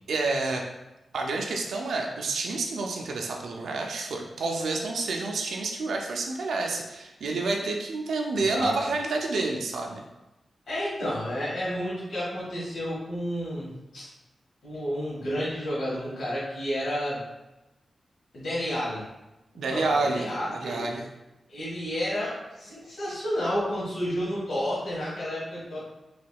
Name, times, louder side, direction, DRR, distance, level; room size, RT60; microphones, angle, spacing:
voice 1, 0.1-0.7 1.1-10.0 19.5-21.1, right 3 dB, 85° right, 1 dB, 0.4 m, -29 dB
voice 2, 8.3-8.7 10.7-14.1 14.6-17.2 18.3-19.0 19.5-20.8 21.5-25.8, equal, 75° left, -9 dB, 1.3 m, -31 dB
3.3 x 3.0 x 2.2 m, 0.99 s
cardioid pair, 60°, 0 cm